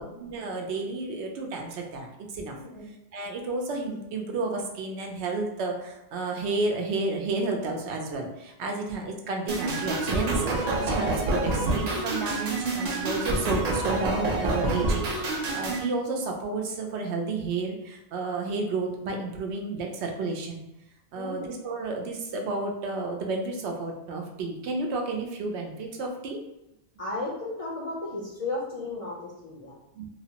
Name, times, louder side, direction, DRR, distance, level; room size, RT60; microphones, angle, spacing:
voice 1, 0.0-2.1 2.3-2.6 3.1-20.6 21.1-26.4 29.9-30.1, right 3 dB, 90° right, 2 dB, 0.9 m, -31 dB
sound 1, 9.5-15.8, right 2 dB, 55° right, 0.5 m, -27 dB
voice 2, 21.2-21.5 27.0-29.8, left 2 dB, 50° left, -5 dB, 0.4 m, -34 dB
3.0 x 2.0 x 2.8 m, 0.88 s
omnidirectional pair, 1.1 m